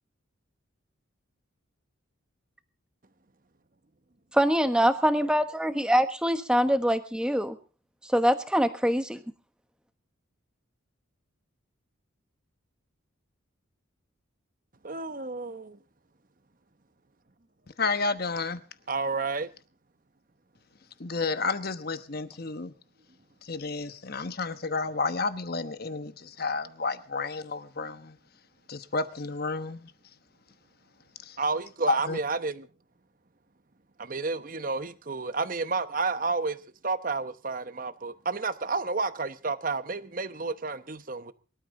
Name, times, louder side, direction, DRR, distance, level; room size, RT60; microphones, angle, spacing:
voice 1, 4.4-7.6 8.0-9.2, equal, 5° right, 1.2 m, -24 dB
voice 2, 14.8-15.8 18.9-19.5 31.4-32.7 34.0-36.6 36.8-41.3, right 4 dB, 40° right, 1.0 m, -31 dB
voice 3, 17.8-18.6 21.0-22.7 23.4-28.2 28.7-29.9 31.2-31.4 31.9-32.2, left 4 dB, 45° left, 1.1 m, -31 dB
24.0 x 12.5 x 3.9 m
head